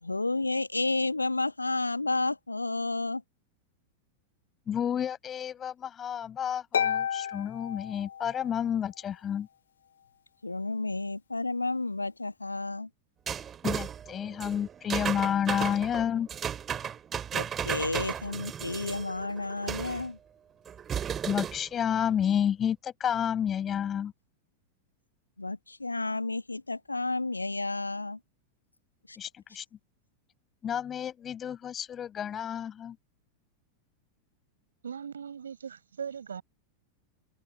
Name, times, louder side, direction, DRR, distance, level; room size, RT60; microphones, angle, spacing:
voice 1, 0.0-3.2 10.4-12.9 17.3-20.2 25.4-28.2 29.1-29.2, left 2 dB, 80° left, 1.6 m, -31 dB
voice 2, 4.7-9.5 13.6-16.3 21.2-24.1 29.2-29.6 30.6-33.0, left 9 dB, 25° left, 6.0 m, -30 dB
Harp, 6.7-8.6, left 8 dB, 65° left, 2.4 m, -31 dB
sound 1, 13.3-20.1 20.7-21.7, right 8 dB, 25° right, 2.4 m, -35 dB
voice 3, 34.8-36.4, right 7 dB, 70° right, 5.0 m, -39 dB
figure-of-eight pair, 90°, 0 cm